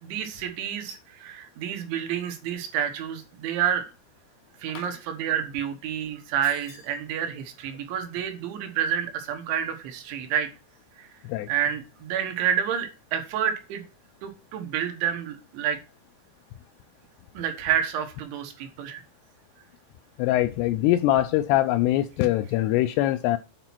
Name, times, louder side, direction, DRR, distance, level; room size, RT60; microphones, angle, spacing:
voice 1, 0.0-3.9 4.6-10.5 11.0-11.1 11.5-13.8 14.2-15.8 17.4-19.0, right 9 dB, 85° right, 3.7 m, -29 dB
sound 1, 6.4-7.0, left 5 dB, 55° left, 4.1 m, -49 dB
voice 2, 20.2-23.4, left 14 dB, 85° left, 2.4 m, -23 dB
9.0 x 4.2 x 5.9 m
omnidirectional pair, 5.1 m